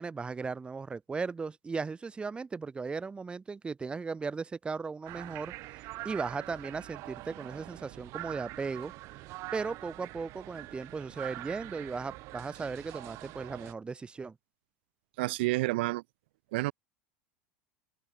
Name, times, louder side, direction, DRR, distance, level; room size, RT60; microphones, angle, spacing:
voice 1, 0.0-8.9 9.5-14.4, right 4 dB, 15° right, 0.7 m, -37 dB
sound 1, 5.1-13.7, right 21 dB, 55° right, 2.6 m, -44 dB
voice 2, 15.2-16.0 16.5-16.7, right 21 dB, 75° right, 0.4 m, -29 dB
hypercardioid pair, 95°, 6 cm